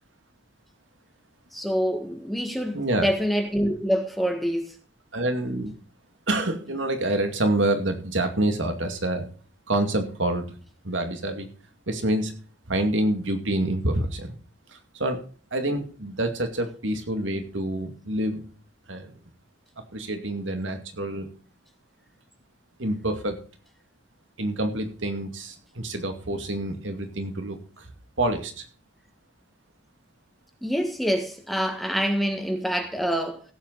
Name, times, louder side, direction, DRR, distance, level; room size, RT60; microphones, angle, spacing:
voice 1, 1.5-4.7 30.6-33.4, equal, ahead, 1.6 m, -26 dB
voice 2, 2.7-3.1 5.1-5.7 6.3-9.3 9.7-10.5 10.8-11.5 11.9-12.4 12.7-14.3 14.7-15.2 15.5-18.5 18.9-19.1 19.9-21.3 22.8-23.4 24.4-27.9 28.2-28.7, right 1 dB, 85° right, 2.3 m, -27 dB
16.5 x 7.9 x 4.0 m
head